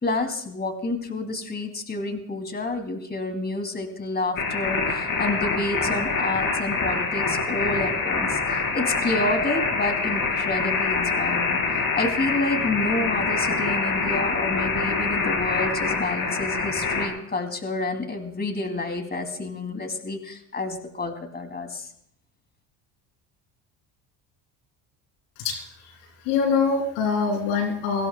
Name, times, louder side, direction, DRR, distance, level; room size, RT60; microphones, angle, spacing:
voice 1, 0.0-11.6 11.9-21.9, left 2 dB, 20° left, 6 dB, 2.7 m, -29 dB
sound 1, 4.4-17.1, left 4 dB, 40° left, 4.3 m, -25 dB
voice 2, 26.2-28.1, left 5 dB, 85° left, 4 dB, 3.1 m, -23 dB
23.0 x 16.5 x 2.2 m, 0.68 s
supercardioid pair, 80°, 47 cm